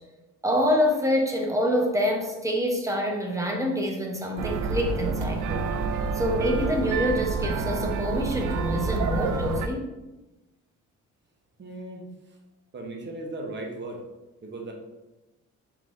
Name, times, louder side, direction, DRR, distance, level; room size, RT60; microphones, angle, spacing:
voice 1, 0.4-5.6 6.1-9.9, equal, 10° right, 1 dB, 0.9 m, -26 dB
sound 1, 4.4-9.7, right 4 dB, 80° right, 0.5 m, -28 dB
voice 2, 11.6-12.1 12.7-14.0 14.4-14.7, right 2 dB, 40° right, 1 dB, 1.0 m, -36 dB
4.5 x 3.9 x 2.6 m, 1.1 s
cardioid pair, 90°, 30 cm